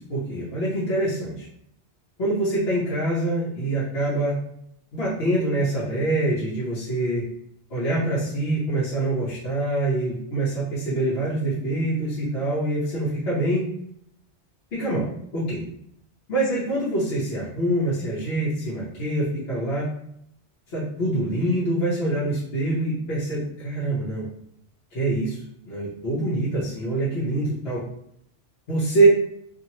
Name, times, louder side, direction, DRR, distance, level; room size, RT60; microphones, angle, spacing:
voice 1, 0.1-1.5 2.2-4.4 4.9-7.2 7.7-13.7 14.7-15.6 16.3-19.9 20.7-24.3 24.9-25.4 25.7-27.8 28.7-29.1, right 2 dB, 70° left, -8 dB, 1.1 m, -25 dB
2.9 x 2.6 x 2.8 m, 0.73 s
omnidirectional pair, 1.1 m